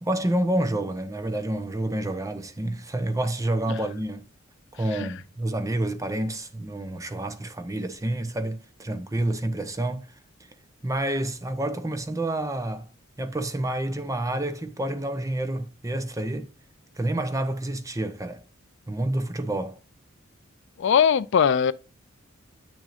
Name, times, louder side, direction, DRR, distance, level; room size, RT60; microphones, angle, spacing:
voice 1, 0.0-4.2 4.7-10.1 10.8-12.9 13.2-16.5 17.0-18.4 18.9-19.8, right 1 dB, 15° right, 0.7 m, -28 dB
voice 2, 20.8-21.7, left 7 dB, 60° left, 0.4 m, -20 dB
8.6 x 6.2 x 2.5 m
head